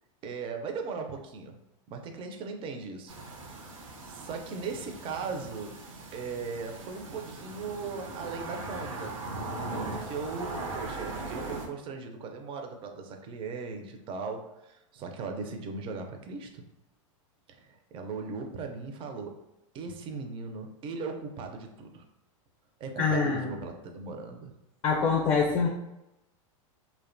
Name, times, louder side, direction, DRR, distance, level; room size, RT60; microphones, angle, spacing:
voice 1, 0.2-1.6 1.9-3.2 4.0-5.8 6.1-9.2 9.7-16.6 17.5-19.3 19.7-22.0 22.8-24.5, right 4 dB, 30° right, 4 dB, 0.4 m, -38 dB
sound 1, 3.1-11.7, right 2 dB, 80° right, 0.6 m, -39 dB
voice 2, 23.0-23.5 24.8-25.7, left 5 dB, 35° left, 0 dB, 0.5 m, -25 dB
2.5 x 2.1 x 2.5 m, 0.91 s
hypercardioid pair, 115°, 17 cm